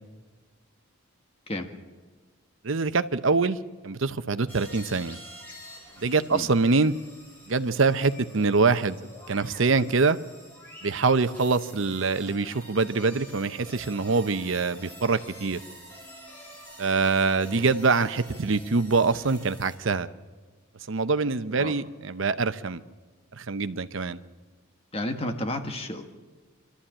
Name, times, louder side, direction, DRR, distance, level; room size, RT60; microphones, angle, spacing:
voice 1, 2.6-3.6 3.8-5.2 6.0-6.9 7.5-9.0 9.3-10.2 10.8-15.6 16.8-20.1 20.9-22.8 23.4-24.2, right 4 dB, 65° right, 13 dB, 0.7 m, -24 dB
sound 1, 4.5-19.8, equal, 10° left, 5.0 m, -47 dB
voice 2, 24.9-26.0, left 1 dB, 30° left, 5 dB, 1.5 m, -31 dB
25.5 x 13.0 x 8.8 m, 1.3 s
head